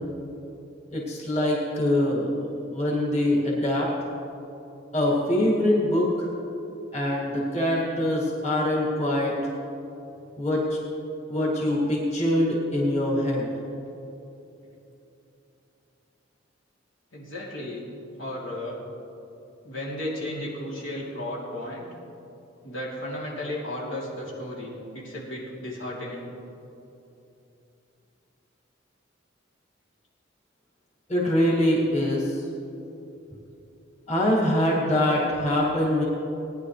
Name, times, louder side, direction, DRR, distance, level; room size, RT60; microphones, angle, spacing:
voice 1, 0.9-3.9 4.9-6.3 6.9-9.3 10.4-10.8 11.3-13.5 31.1-32.3 34.1-36.0, left 1 dB, 35° left, -5 dB, 2.3 m, -24 dB
voice 2, 17.1-17.9 18.2-18.8 19.6-21.9 22.6-26.3, left 1 dB, 85° left, -5 dB, 3.1 m, -34 dB
19.0 x 10.5 x 3.3 m, 2.9 s
head